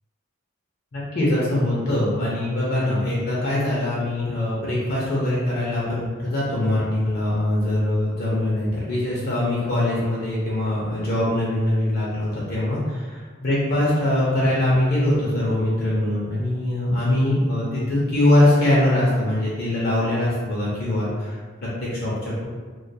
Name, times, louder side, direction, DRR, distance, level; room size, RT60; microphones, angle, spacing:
voice 1, 0.9-22.5, left 1 dB, 50° left, -6 dB, 0.5 m, -22 dB
2.3 x 2.2 x 2.6 m, 1.5 s
head